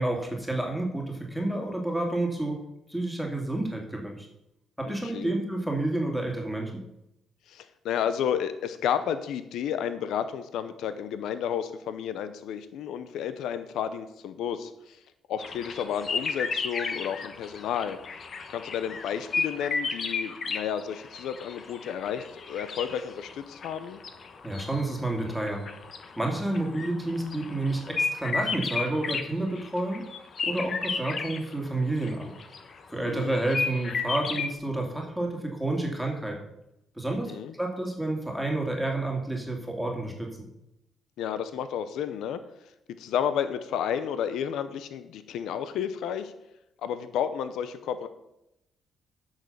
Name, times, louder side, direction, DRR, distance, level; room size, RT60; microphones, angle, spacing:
voice 1, 0.0-2.6 2.9-4.3 4.8-6.8 24.4-25.7 26.2-30.1 30.4-32.3 32.9-36.4 37.0-37.3 37.6-40.3, right 2 dB, ahead, 0 dB, 2.6 m, -29 dB
voice 2, 4.9-5.4 7.5-15.0 15.3-18.0 18.5-24.0 33.0-33.4 37.1-37.5 41.2-42.4 43.0-46.3 46.8-48.1, left 8 dB, 80° left, 11 dB, 0.7 m, -32 dB
sound 1, 15.4-31.5 32.0-34.5, left 4 dB, 50° left, 1.1 m, -33 dB
9.6 x 6.5 x 6.7 m, 0.85 s
cardioid pair, 90°, 0 cm